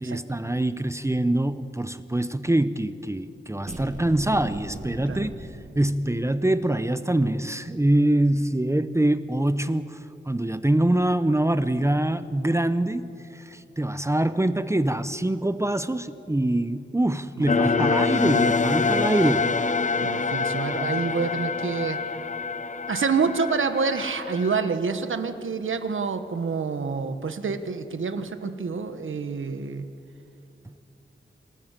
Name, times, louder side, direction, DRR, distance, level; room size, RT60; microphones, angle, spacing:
voice 1, 0.0-5.5 5.8-10.0 10.3-19.4 20.7-20.9, right 1 dB, 15° right, 13 dB, 0.7 m, -24 dB
sound 1, 3.7-6.4, right 2 dB, 35° right, 2.0 m, -38 dB
voice 2, 17.4-18.0 19.0-19.2 20.0-22.0 22.9-29.9, right 5 dB, 75° right, 10 dB, 1.3 m, -28 dB
sound 2, 17.5-24.7, left 4 dB, 40° left, 0.8 m, -26 dB
27.5 x 14.0 x 7.5 m, 2.7 s
wide cardioid pair, 75°, 21 cm